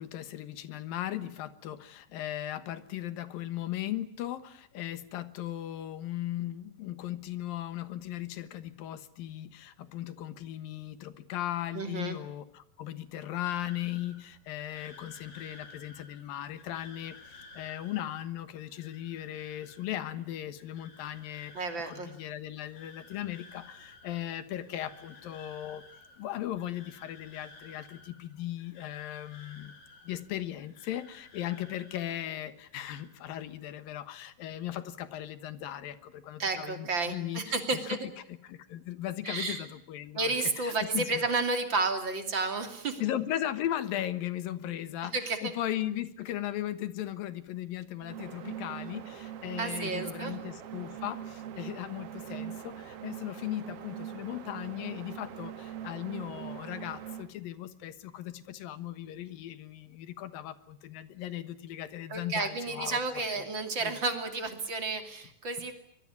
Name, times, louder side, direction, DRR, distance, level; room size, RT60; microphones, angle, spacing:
voice 1, 0.0-25.8 26.2-29.7 30.0-37.6 37.9-38.0 38.4-41.2 43.0-63.0 63.3-63.5 63.8-64.0, left 12 dB, 80° left, 13 dB, 3.0 m, -37 dB
voice 2, 11.7-12.2 21.5-22.1 36.4-38.0 39.2-39.6 40.1-43.0 45.1-45.5 49.6-50.3 62.1-65.7, right 3 dB, 35° right, 7 dB, 3.1 m, -31 dB
sound 1, 13.4-32.3 32.6-33.1, left 3 dB, 55° left, 5.3 m, -54 dB
sound 2, 48.0-57.3, right 10 dB, 55° right, 2.0 m, -42 dB
24.5 x 22.0 x 9.7 m, 0.69 s
omnidirectional pair, 4.0 m